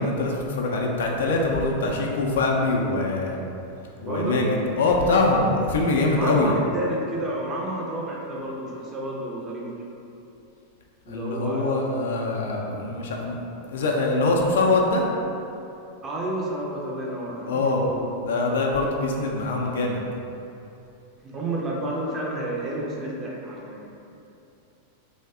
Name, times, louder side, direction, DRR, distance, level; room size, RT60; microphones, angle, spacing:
voice 1, 0.0-3.4 4.0-6.6 11.1-15.1 17.5-17.9 18.2-20.1, left 2 dB, 60° left, 0 dB, 0.3 m, -23 dB
voice 2, 4.0-4.5 6.1-10.0 11.1-11.8 16.0-18.1 21.2-23.8, right 1 dB, 25° right, -3 dB, 0.5 m, -31 dB
2.6 x 2.1 x 3.4 m, 2.8 s
figure-of-eight pair, 90°, 0 cm